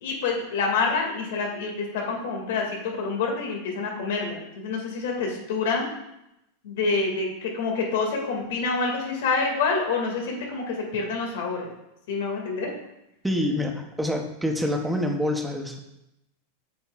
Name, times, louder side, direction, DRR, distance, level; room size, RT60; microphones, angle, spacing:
voice 1, 0.0-5.9 6.6-11.7 12.1-12.7, left 4 dB, 65° left, 0 dB, 2.0 m, -27 dB
voice 2, 13.2-15.8, left 1 dB, 5° right, 3 dB, 0.6 m, -26 dB
8.3 x 7.3 x 2.4 m, 0.87 s
supercardioid pair, 175°, 0 cm